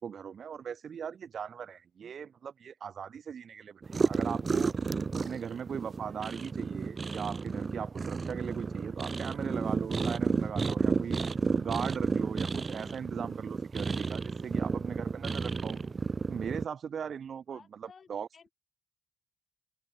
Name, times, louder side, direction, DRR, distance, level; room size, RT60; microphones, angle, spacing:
voice 1, 0.0-4.7 5.1-11.2 11.5-15.8 16.3-18.3, right 7 dB, 55° right, 1.2 m, -39 dB
sound 1, 3.8-16.6, right 4 dB, 35° right, 0.7 m, -32 dB
voice 2, 17.5-18.5, left 6 dB, 45° left, 6.9 m, -57 dB
open air
supercardioid pair, 65°, 0 cm